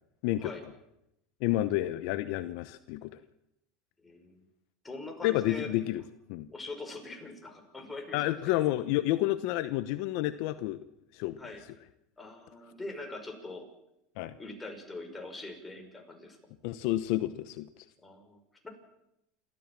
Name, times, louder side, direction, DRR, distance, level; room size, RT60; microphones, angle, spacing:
voice 1, 1.4-3.2 5.2-6.0 6.3-6.5 8.1-10.8 11.1-11.4 14.2-14.3 16.6-17.7, left 15 dB, 70° left, 13 dB, 0.9 m, -30 dB
voice 2, 4.0-4.4 4.8-5.7 6.5-8.6 11.4-11.6 12.2-13.7 14.4-16.4 18.0-18.7, left 2 dB, 15° left, 4 dB, 5.7 m, -43 dB
29.0 x 13.5 x 7.5 m, 0.84 s
supercardioid pair, 100°, 0 cm